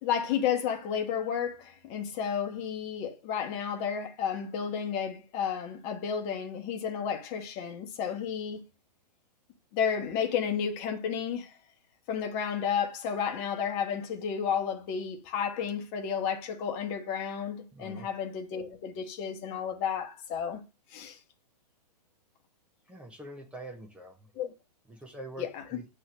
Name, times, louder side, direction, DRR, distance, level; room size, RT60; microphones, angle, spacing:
voice 1, 0.0-8.6 9.7-11.5 12.1-20.6 20.9-21.2 24.3-24.5 25.4-25.6, left 7 dB, 30° left, 1.3 m, -32 dB
voice 2, 17.7-18.1 22.9-24.3 24.9-25.9, right 1 dB, 5° right, 0.9 m, -45 dB
8.4 x 3.4 x 6.2 m
figure-of-eight pair, 115°, 21 cm